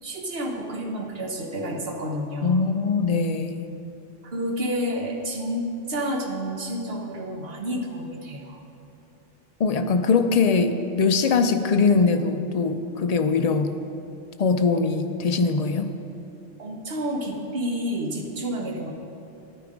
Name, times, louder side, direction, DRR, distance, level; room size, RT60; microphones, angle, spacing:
voice 1, 0.0-2.6 4.2-8.6 16.6-18.9, equal, 55° right, 2 dB, 1.3 m, -30 dB
voice 2, 2.4-3.7 9.6-13.7 14.4-15.9, left 4 dB, 60° left, 8 dB, 0.4 m, -22 dB
11.0 x 9.2 x 5.1 m, 3.0 s
omnidirectional pair, 1.3 m